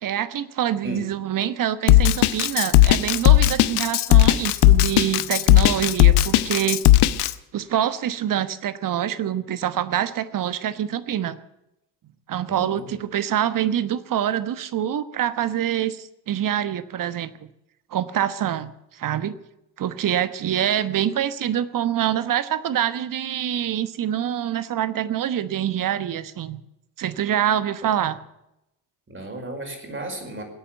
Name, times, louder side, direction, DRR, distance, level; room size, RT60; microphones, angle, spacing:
voice 1, 0.0-6.8 7.5-11.4 12.3-17.3 17.9-19.4 19.8-26.6 27.0-28.2, right 10 dB, 45° right, 14 dB, 1.2 m, -25 dB
Drum kit, 1.9-7.3, left 15 dB, 60° left, 0.9 m, -15 dB
voice 2, 12.5-13.0 29.1-30.4, right 1 dB, 25° right, 3 dB, 5.2 m, -34 dB
20.5 x 8.5 x 8.0 m, 0.86 s
hypercardioid pair, 55°, 47 cm